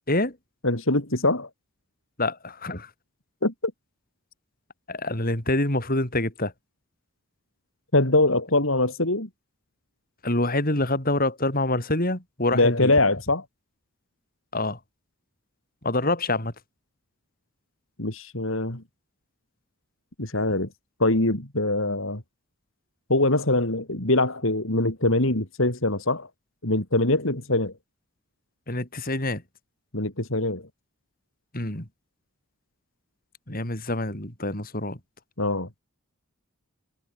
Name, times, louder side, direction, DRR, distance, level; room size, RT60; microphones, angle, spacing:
voice 1, 0.6-1.5 3.4-3.7 7.9-9.3 12.5-13.4 18.0-18.8 20.2-20.7 21.0-22.2 23.1-26.3 26.6-27.7 29.9-30.6 35.4-35.7, left 2 dB, 60° left, 3.8 m, -23 dB
voice 2, 2.2-2.9 4.9-6.5 10.2-12.9 14.5-14.8 15.8-16.5 28.7-29.4 31.5-31.9 33.5-35.0, left 2 dB, 40° left, 4.8 m, -26 dB
head